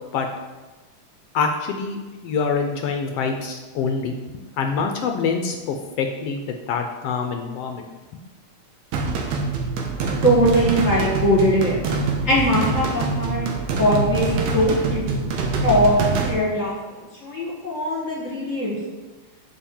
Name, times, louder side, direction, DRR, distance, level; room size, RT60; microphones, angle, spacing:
voice 1, 1.3-2.0 2.2-4.1 4.6-6.4 6.7-7.9, left 5 dB, 80° left, 4 dB, 1.4 m, -25 dB
sound 1, 8.9-16.3, right 3 dB, 75° right, 2.3 m, -25 dB
voice 2, 10.2-11.8 12.2-13.4 13.8-14.3 14.5-15.2 15.6-16.7 17.2-18.8, equal, 35° left, -4 dB, 1.6 m, -20 dB
7.9 x 4.5 x 7.1 m, 1.2 s
omnidirectional pair, 3.4 m